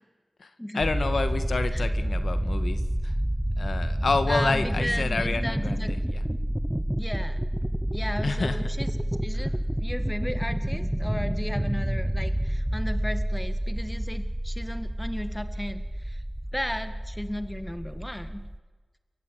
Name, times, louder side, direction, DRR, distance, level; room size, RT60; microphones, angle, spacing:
voice 1, 0.4-3.1 3.6-6.2 8.2-8.6, left 4 dB, 70° left, 10 dB, 1.8 m, -29 dB
sound 1, 0.8-18.6, equal, 10° right, 1.0 m, -29 dB
voice 2, 4.3-5.9 7.0-7.4 7.9-8.9 9.2-9.5 9.8-16.2 16.5-18.4, equal, 10° left, 10 dB, 1.9 m, -35 dB
30.0 x 15.5 x 9.4 m, 1.3 s
wide cardioid pair, 75°, 0 cm